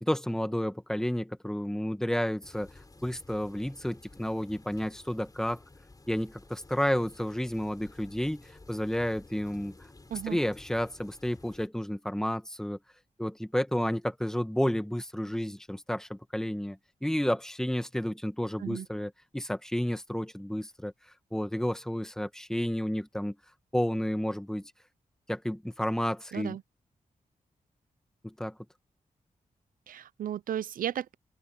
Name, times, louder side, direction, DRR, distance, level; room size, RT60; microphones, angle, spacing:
voice 1, 0.0-2.7 3.0-5.6 6.1-9.8 10.3-12.8 13.2-20.9 21.3-23.3 23.7-24.7 25.3-26.6 28.2-28.5, equal, 5° left, 1.7 m, -31 dB
sound 1, 2.4-11.7, left 2 dB, 25° left, 5.1 m, -53 dB
voice 2, 29.9-31.1, right 10 dB, 80° right, 0.5 m, -34 dB
cardioid pair, 90°, 14 cm